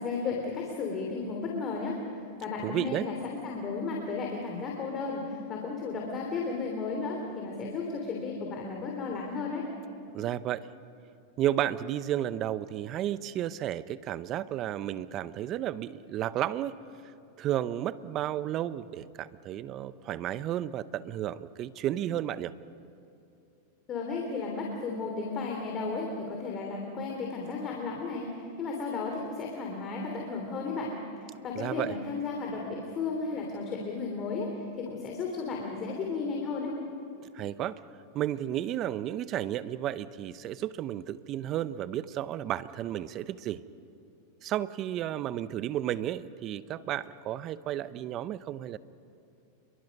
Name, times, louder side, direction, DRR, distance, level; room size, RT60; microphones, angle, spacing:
voice 1, 0.0-2.0 2.4-9.7 23.9-31.0 31.4-34.5 34.8-36.8, left 4 dB, 35° left, 0 dB, 3.3 m, -34 dB
voice 2, 2.6-3.1 10.1-10.7 11.4-16.7 17.4-22.5 31.5-31.9 37.3-37.8 38.1-43.6 44.4-48.8, right 12 dB, 40° right, 16 dB, 0.7 m, -32 dB
28.5 x 23.0 x 5.4 m, 2.7 s
hypercardioid pair, 115°, 0 cm